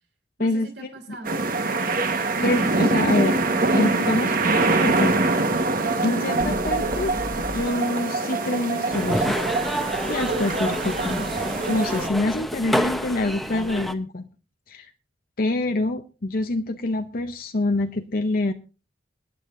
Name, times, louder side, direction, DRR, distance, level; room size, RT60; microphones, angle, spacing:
voice 1, 0.4-2.0 7.1-7.3, right 1 dB, 75° right, 4 dB, 3.5 m, -41 dB
sound 1, 1.2-12.1, right 3 dB, 55° right, 1.4 m, -24 dB
voice 2, 2.4-3.4 3.7-5.2 5.6-5.7 6.0-7.2 7.5-9.4 10.1-11.3 11.7-14.3 14.7-14.9 15.4-18.5, left 2 dB, 55° left, 5 dB, 0.7 m, -26 dB
sound 2, 6.4-7.7, equal, 25° right, 1.9 m, -35 dB
sound 3, 8.9-13.9, equal, ahead, 0.8 m, -28 dB
26.0 x 9.9 x 2.6 m, 0.33 s
head